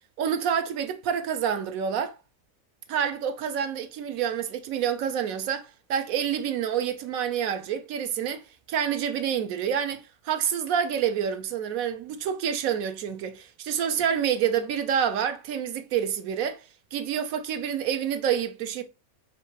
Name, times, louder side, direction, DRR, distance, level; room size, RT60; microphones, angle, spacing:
voice 1, 0.2-2.1 2.9-8.4 8.7-16.6 16.9-18.8, right 8 dB, 75° right, 1.0 m, -28 dB
5.8 x 2.6 x 2.7 m
omnidirectional pair, 1.5 m